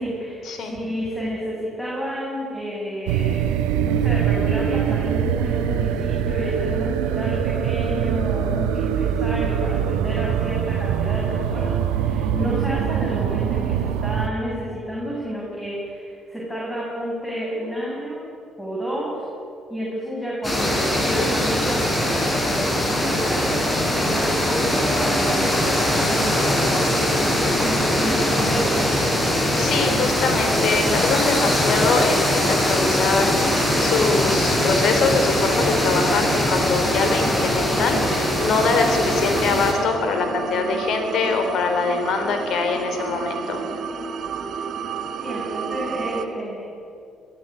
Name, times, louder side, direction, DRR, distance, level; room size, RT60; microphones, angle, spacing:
voice 1, 0.0-3.4 3.8-18.2 18.6-19.3 19.7-22.5 22.9-28.9 45.2-46.7, equal, 5° left, -5 dB, 7.8 m, -30 dB
sound 1, 3.1-14.3, right 9 dB, 70° right, 1.0 m, -23 dB
sound 2, 20.4-39.7, left 1 dB, 20° left, 6.5 m, -21 dB
voice 2, 29.6-43.6, left 4 dB, 55° left, 5 dB, 3.7 m, -23 dB
sound 3, 33.2-46.2, right 6 dB, 55° right, 1.6 m, -32 dB
23.5 x 14.0 x 10.0 m, 2.5 s
figure-of-eight pair, 45°, 0 cm